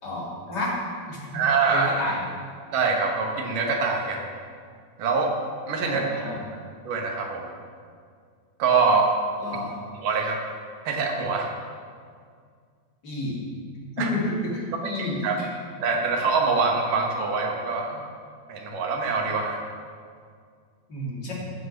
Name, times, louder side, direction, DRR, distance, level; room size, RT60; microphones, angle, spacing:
voice 1, 0.0-0.7 1.1-1.4 1.7-2.2 5.8-6.4 9.4-9.8 13.0-13.4 14.0-15.5 20.9-21.3, left 1 dB, 30° left, -4 dB, 2.6 m, -30 dB
voice 2, 1.3-1.9 2.7-4.3 5.0-5.3 5.7-6.0 6.9-7.5 8.6-9.1 10.0-10.4 10.9-11.5 14.0-14.1 15.2-15.4 15.8-18.0 18.5-19.6, right 4 dB, 70° right, 1 dB, 3.0 m, -24 dB
15.0 x 6.8 x 6.6 m, 2.1 s
omnidirectional pair, 4.1 m